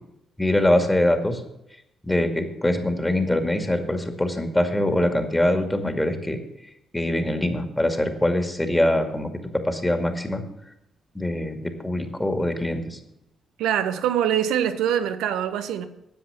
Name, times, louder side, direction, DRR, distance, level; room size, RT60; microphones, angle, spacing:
voice 1, 0.4-1.4 2.0-6.4 6.9-9.3 9.6-10.4 11.1-13.0, left 1 dB, 15° left, 2.2 m, -23 dB
voice 2, 13.6-15.9, right 9 dB, 75° right, 0.9 m, -24 dB
10.5 x 7.5 x 8.0 m
hypercardioid pair, 45°, 0 cm